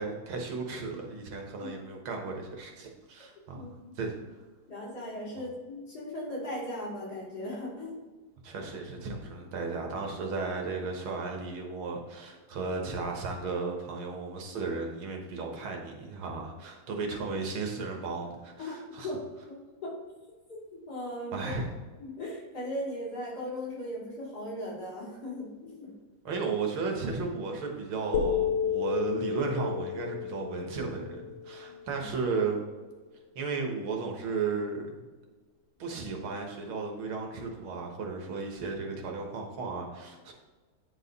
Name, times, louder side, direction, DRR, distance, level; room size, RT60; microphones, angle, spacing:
voice 1, 0.0-4.4 8.4-19.1 21.3-21.7 26.2-32.6 33.4-35.0 35.8-40.3, right 4 dB, 85° right, 1 dB, 2.2 m, -34 dB
voice 2, 3.5-3.9 4.7-8.0 18.6-18.8 19.0-19.1 19.5-19.6 19.8-19.9 20.5-21.5 22.0-25.9 31.6-32.1, left 1 dB, 50° left, -6 dB, 3.4 m, -38 dB
sound 1, 28.1-32.2, left 7 dB, 75° left, 1.8 m, -32 dB
9.5 x 4.9 x 4.1 m, 1.3 s
omnidirectional pair, 2.2 m